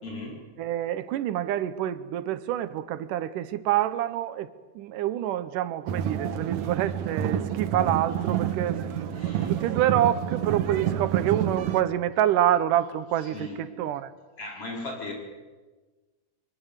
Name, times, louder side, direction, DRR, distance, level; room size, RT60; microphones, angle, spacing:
voice 1, 0.0-0.4 9.1-9.7 13.2-13.8 14.4-15.1, left 2 dB, 45° left, -1 dB, 5.7 m, -38 dB
voice 2, 0.6-4.5 4.8-9.1 9.5-14.1, right 12 dB, 85° right, 13 dB, 2.5 m, -27 dB
sound 1, 5.9-11.8, right 10 dB, 65° right, 2.4 m, -28 dB
24.5 x 22.0 x 8.2 m, 1.3 s
omnidirectional pair, 3.6 m